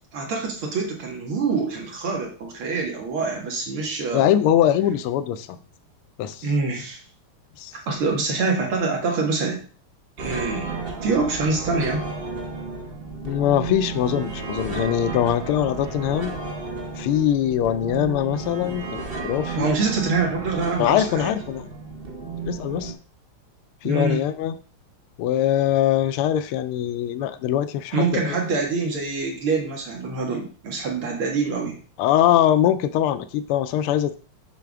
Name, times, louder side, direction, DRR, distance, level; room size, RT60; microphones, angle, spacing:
voice 1, 0.1-4.3 6.4-7.0 7.9-9.6 10.2-12.0 19.5-21.3 23.8-24.3 27.9-31.8, right 4 dB, 75° right, 0 dB, 2.6 m, -25 dB
voice 2, 4.1-5.5 6.2-6.5 7.6-7.7 13.2-16.3 17.0-19.7 20.8-21.7 22.4-22.9 23.8-24.6 25.2-28.3 32.0-34.2, left 11 dB, 85° left, 12 dB, 1.5 m, -22 dB
sound 1, 10.2-22.9, right 3 dB, 45° right, 0.7 m, -33 dB
7.0 x 5.8 x 3.5 m, 0.39 s
omnidirectional pair, 2.4 m